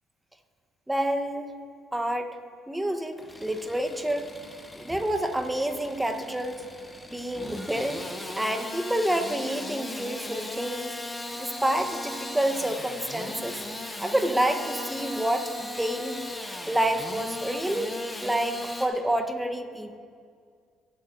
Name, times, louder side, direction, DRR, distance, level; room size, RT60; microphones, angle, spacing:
voice 1, 0.9-1.5 1.9-2.4 2.7-4.3 4.8-6.6 7.1-8.0 8.4-10.9 11.4-13.6 14.0-16.2 16.7-20.0, right 1 dB, 10° right, 7 dB, 1.1 m, -28 dB
Engine starting / Sawing, 3.1-18.9, left 1 dB, 10° left, 1.3 m, -38 dB
19.5 x 8.6 x 2.7 m, 2.1 s
hypercardioid pair, 55°, 0 cm